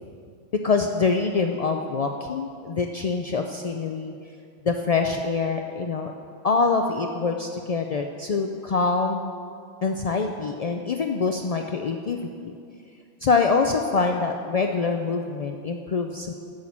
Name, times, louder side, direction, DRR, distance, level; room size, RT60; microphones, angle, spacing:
voice 1, 0.6-4.1 4.6-6.1 6.4-9.4 9.8-12.2 12.4-12.6 13.2-16.3, left 4 dB, 70° left, 4 dB, 0.3 m, -25 dB
11.0 x 6.4 x 7.2 m, 2.4 s
omnidirectional pair, 1.3 m